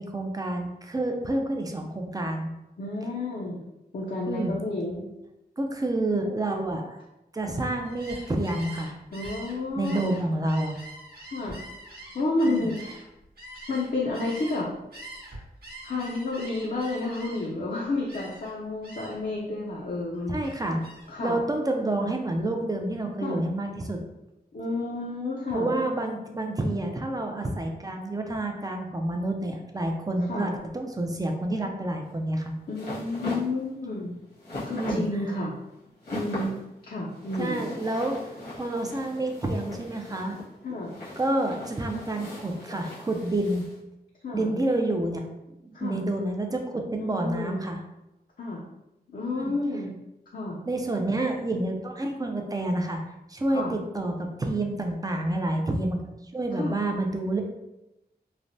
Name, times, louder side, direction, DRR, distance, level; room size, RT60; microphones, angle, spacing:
voice 1, 0.0-2.5 4.3-4.6 5.6-7.0 7.3-8.9 9.8-10.8 12.4-12.7 20.3-20.8 21.2-24.0 25.5-32.5 34.8-35.0 37.4-38.2 38.5-40.4 41.2-43.7 44.3-45.2 45.6-47.8 49.3-49.5 50.7-53.0 53.3-56.0 56.3-57.4, right 1 dB, 20° right, 3 dB, 0.4 m, -28 dB
voice 2, 2.8-3.6 3.9-5.0 9.1-10.2 11.3-11.6 12.1-12.8 13.7-14.7 15.8-20.4 21.1-21.4 23.2-23.4 24.5-25.7 30.3-30.5 32.7-34.2 34.7-35.5 36.1-37.7 40.6-40.9 44.2-44.5 45.7-46.0 47.0-47.7 48.4-48.6 49.1-49.9 50.3-50.6 53.5-53.7 56.5-56.8, left 2 dB, 55° left, -4 dB, 0.5 m, -30 dB
Gull seagull, 7.8-14.6 14.9-17.6 18.1-18.5 18.8-19.3 19.7-21.2, right 1 dB, 70° right, 0.9 m, -44 dB
sound 1, 32.1-43.8, left 1 dB, 80° left, 1.2 m, -39 dB
3.2 x 2.0 x 2.6 m, 0.93 s
wide cardioid pair, 95°, 17 cm